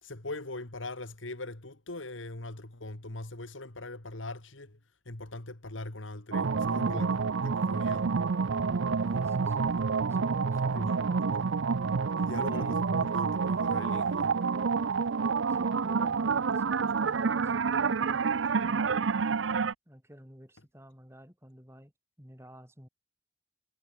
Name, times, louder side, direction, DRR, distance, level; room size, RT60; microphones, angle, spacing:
voice 1, 0.0-4.8 5.1-8.1 9.5-9.6 10.7-11.0 12.2-14.4, left 2 dB, 85° left, 2.4 m, -41 dB
sound 1, 6.3-19.7, right 5 dB, 80° right, 0.6 m, -28 dB
voice 2, 9.1-9.7 10.1-11.6 12.5-12.8 15.5-19.4 19.9-21.9 22.2-22.9, equal, 15° right, 5.6 m, -51 dB
head